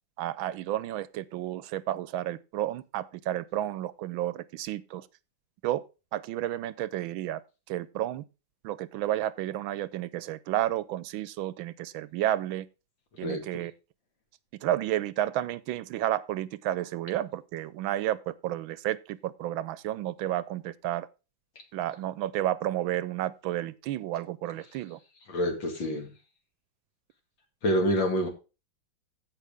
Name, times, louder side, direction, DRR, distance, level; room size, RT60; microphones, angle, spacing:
voice 1, 0.2-5.1 5.6-5.8 6.1-7.4 7.7-8.2 8.6-12.7 13.2-13.7 14.6-21.1 21.7-25.0, right 13 dB, 75° right, 1.4 m, -31 dB
voice 2, 25.3-26.1 27.6-28.3, equal, 65° left, 3.0 m, -27 dB
16.0 x 5.4 x 3.4 m
omnidirectional pair, 2.3 m